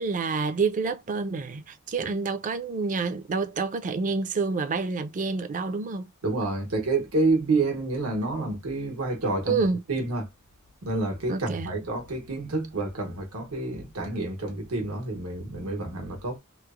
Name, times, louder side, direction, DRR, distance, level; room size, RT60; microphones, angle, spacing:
voice 1, 0.0-6.1 9.5-9.8 11.3-11.7, right 4 dB, 35° right, 0.4 m, -28 dB
voice 2, 6.2-10.3 10.8-16.4, right 2 dB, 90° right, 1.0 m, -28 dB
3.0 x 2.1 x 2.3 m
head